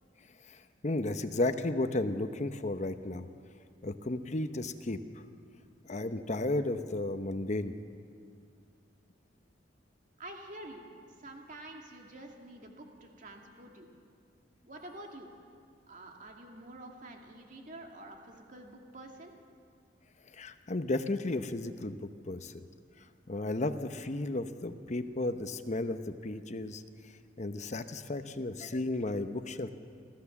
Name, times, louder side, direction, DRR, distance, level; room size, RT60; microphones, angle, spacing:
voice 1, 0.5-3.3 3.8-5.0 5.8-7.7 20.3-22.7 23.3-26.8 27.4-29.7, left 2 dB, 40° left, 9 dB, 0.9 m, -34 dB
voice 2, 10.2-10.8 11.2-13.9 14.6-15.3 15.9-19.3, right 1 dB, 45° right, 2 dB, 2.3 m, -48 dB
27.5 x 13.5 x 7.2 m, 2.3 s
head